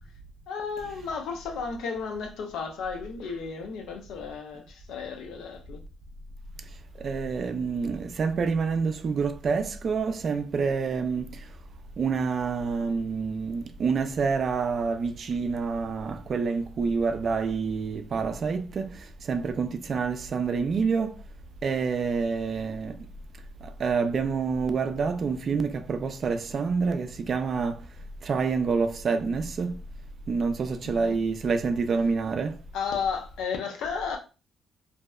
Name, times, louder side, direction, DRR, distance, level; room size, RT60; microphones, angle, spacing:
voice 1, 0.5-5.8 30.8-31.2 32.7-34.2, left 5 dB, 85° left, 0.6 m, -33 dB
voice 2, 7.0-11.3 12.0-21.2 21.6-22.9 23.8-27.8 28.2-29.8 30.3-32.5, right 5 dB, 50° right, 0.3 m, -27 dB
2.7 x 2.1 x 2.3 m
cardioid pair, 90°, 0 cm